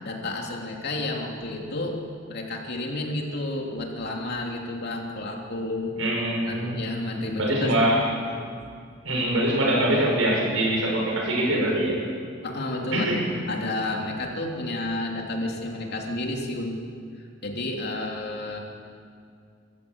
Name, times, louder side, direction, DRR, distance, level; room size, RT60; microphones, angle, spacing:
voice 1, 0.0-5.9 6.5-7.9 12.4-13.1 13.5-16.8 17.2-18.6, left 2 dB, 55° left, 0 dB, 3.1 m, -31 dB
voice 2, 6.0-6.8 7.4-8.1 9.0-12.0 12.9-13.2, right 1 dB, 90° right, -1 dB, 6.3 m, -23 dB
23.5 x 14.0 x 8.3 m, 2.3 s
head